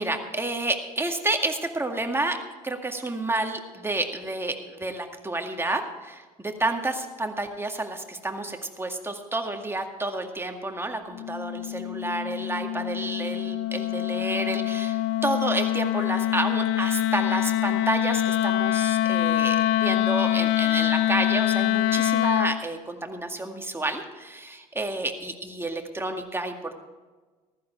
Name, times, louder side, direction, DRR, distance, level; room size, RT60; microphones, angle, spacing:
voice 1, 0.0-2.4 2.6-26.7, right 2 dB, 10° right, 4 dB, 2.0 m, -30 dB
Wind instrument woodwind instrument, 11.1-22.6, left 12 dB, 70° left, 0.6 m, -25 dB
14.5 x 13.0 x 4.6 m, 1.3 s
hypercardioid pair, 60°, 19 cm